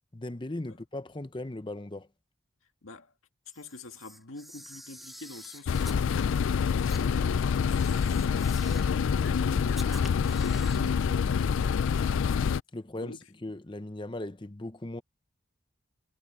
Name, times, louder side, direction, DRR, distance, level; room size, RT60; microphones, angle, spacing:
voice 1, 0.0-2.1 12.7-13.1 13.4-15.0, left 1 dB, 25° left, 0.7 m, -38 dB
voice 2, 2.8-3.1 3.5-6.2 6.4-8.3 8.9-11.9 12.9-13.2, left 2 dB, 90° left, 1.9 m, -44 dB
Camera, 3.5-6.0 6.9-7.0 7.7-9.0 9.7-10.9, equal, ahead, 1.7 m, -48 dB
sound 1, 5.7-12.6, left 6 dB, 75° left, 0.4 m, -26 dB
head